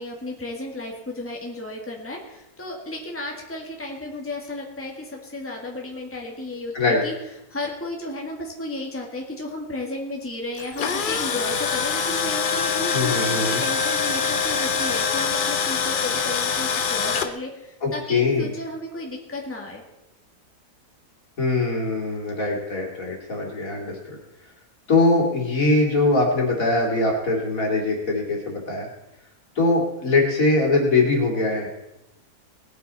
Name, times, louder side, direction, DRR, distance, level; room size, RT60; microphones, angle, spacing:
voice 1, 0.0-7.1 7.5-19.8, left 1 dB, 10° left, 0 dB, 1.9 m, -33 dB
Tools, 10.6-17.3, left 6 dB, 45° left, 0.8 m, -24 dB
voice 2, 12.9-13.6 17.8-18.5 21.4-24.0 24.9-28.9 29.6-31.7, left 2 dB, 70° left, -1 dB, 3.0 m, -22 dB
19.0 x 8.9 x 4.1 m, 0.93 s
omnidirectional pair, 1.5 m